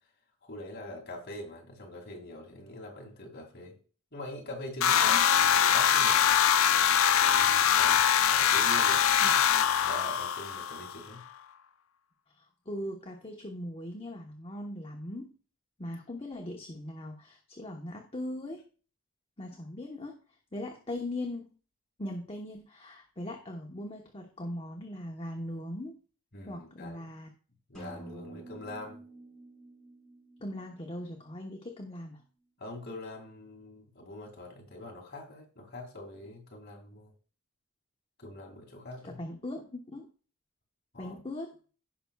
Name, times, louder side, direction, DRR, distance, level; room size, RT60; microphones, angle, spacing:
voice 1, 0.4-3.8 4.1-6.6 7.2-11.2 26.3-27.1 27.7-29.0 32.6-37.1 38.2-39.2 40.9-41.2, left 1 dB, 50° left, 1 dB, 2.4 m, -44 dB
sound 1, 4.8-11.0, left 8 dB, 65° left, 0.4 m, -23 dB
voice 2, 12.4-15.3 15.8-18.6 19.4-20.2 20.5-21.5 22.0-26.0 26.5-27.3 30.4-32.2 39.0-40.1 41.0-41.5, left 1 dB, 25° left, 1 dB, 1.1 m, -40 dB
sound 2, 27.7-31.5, right 2 dB, 5° left, 4.4 m, -49 dB
16.5 x 5.9 x 2.4 m, 0.38 s
head